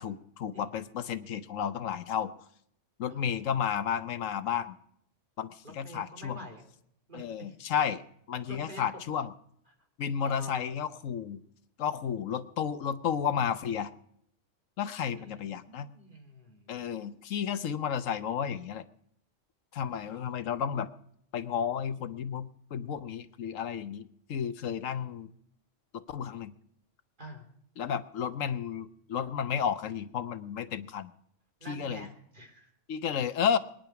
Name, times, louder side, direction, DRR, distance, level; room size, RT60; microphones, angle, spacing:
voice 1, 0.0-2.5 3.0-4.8 5.4-6.4 7.1-9.3 10.0-11.4 11.8-13.9 14.8-15.9 16.7-18.9 19.7-20.9 21.3-25.3 25.9-26.5 27.8-31.1 31.7-32.1 32.9-33.6, left 8 dB, 80° left, 13 dB, 1.2 m, -32 dB
voice 2, 5.6-6.7 7.1-7.6 8.3-9.0 10.2-10.8 15.0-17.0 20.0-20.5 27.2-27.4 31.6-32.7, right 1 dB, 40° right, 3 dB, 3.1 m, -48 dB
21.5 x 10.5 x 5.8 m, 0.71 s
omnidirectional pair, 1.3 m